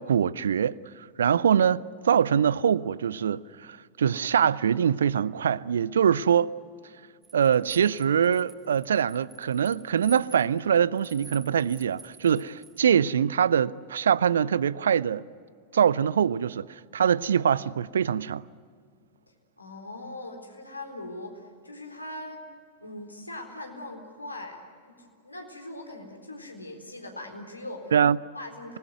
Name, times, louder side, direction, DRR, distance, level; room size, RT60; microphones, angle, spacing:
voice 1, 0.0-6.5 7.3-15.3 15.7-18.4 27.9-28.2, right 8 dB, 65° right, 0.6 m, -24 dB
sound 1, 7.2-12.8, right 4 dB, 15° right, 3.1 m, -49 dB
voice 2, 19.6-22.4 22.8-24.6 24.8-27.9 28.3-28.8, left 1 dB, 85° left, 3.8 m, -40 dB
26.5 x 20.0 x 9.4 m
figure-of-eight pair, 90°, 0 cm